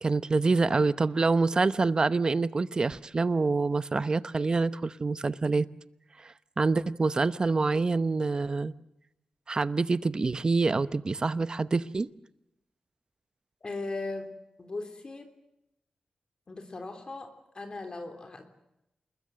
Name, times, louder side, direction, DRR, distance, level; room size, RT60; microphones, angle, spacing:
voice 1, 0.0-5.7 6.2-8.7 9.5-12.1, right 3 dB, 35° right, 15 dB, 0.8 m, -26 dB
voice 2, 13.6-14.3 14.6-15.3 16.5-18.5, left 3 dB, 40° left, 6 dB, 3.2 m, -38 dB
28.0 x 21.0 x 7.7 m, 0.85 s
wide cardioid pair, 105°, 2 cm